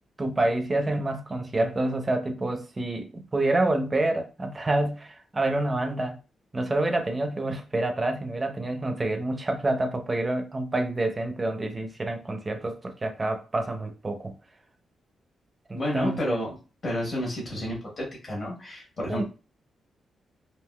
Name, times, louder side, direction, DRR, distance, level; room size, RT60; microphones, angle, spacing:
voice 1, 0.2-6.2 6.5-14.3 15.7-16.4 19.1-19.2, right 2 dB, 20° right, 5 dB, 0.5 m, -27 dB
voice 2, 15.7-16.5 16.8-19.2, left 1 dB, 35° left, -2 dB, 1.1 m, -30 dB
3.5 x 2.6 x 2.2 m, 0.33 s
wide cardioid pair, 165°, 0 cm